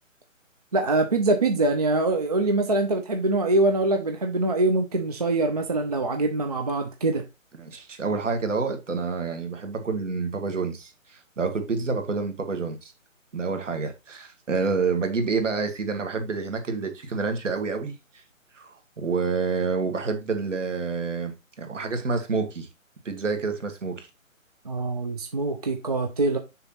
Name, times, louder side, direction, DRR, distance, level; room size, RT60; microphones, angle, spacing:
voice 1, 0.7-7.2 24.6-26.4, right 2 dB, 30° right, 0.5 m, -24 dB
voice 2, 7.6-12.9 13.3-17.9 18.5-22.7 23.1-24.1, right 4 dB, 60° right, 1.9 m, -28 dB
6.6 x 3.0 x 5.8 m
figure-of-eight pair, 155°, 41 cm